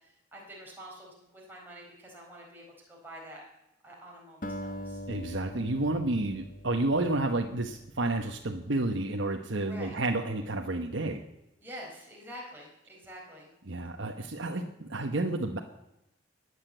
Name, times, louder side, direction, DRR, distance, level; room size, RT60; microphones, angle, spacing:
voice 1, 0.0-3.4 3.8-5.0 9.6-9.9 11.6-13.5, equal, 10° right, -3 dB, 4.5 m, -47 dB
Acoustic guitar, 4.4-8.9, equal, 45° left, 1.1 m, -43 dB
voice 2, 5.1-11.2 13.7-15.6, right 2 dB, 75° right, 2 dB, 1.1 m, -30 dB
21.0 x 8.2 x 7.9 m, 0.88 s
head